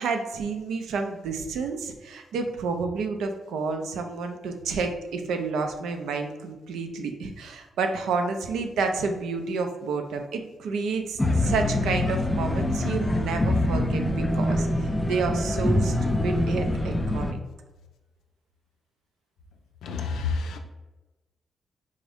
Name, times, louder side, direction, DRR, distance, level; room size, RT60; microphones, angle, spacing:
voice 1, 0.0-17.4, right 4 dB, 85° right, 0.4 m, -30 dB
sound 1, 11.2-17.3, left 1 dB, 20° left, 0.4 m, -25 dB
voice 2, 19.8-20.6, left 4 dB, 80° left, 0.4 m, -29 dB
3.7 x 2.6 x 3.4 m
supercardioid pair, 55°, 0 cm